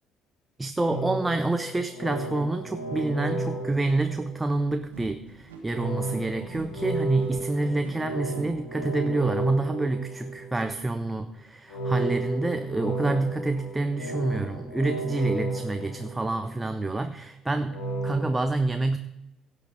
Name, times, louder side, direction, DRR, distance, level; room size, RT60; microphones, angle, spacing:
voice 1, 0.6-19.0, right 2 dB, 15° right, 9 dB, 0.7 m, -28 dB
sound 1, 0.9-4.7 5.7-10.8 11.7-16.7 17.7-18.4, right 2 dB, 70° left, 2.4 m, -33 dB
sound 2, 4.9-8.4, right 5 dB, 75° right, 1.5 m, -45 dB
16.5 x 6.9 x 4.9 m, 0.87 s
figure-of-eight pair, 50°, 0 cm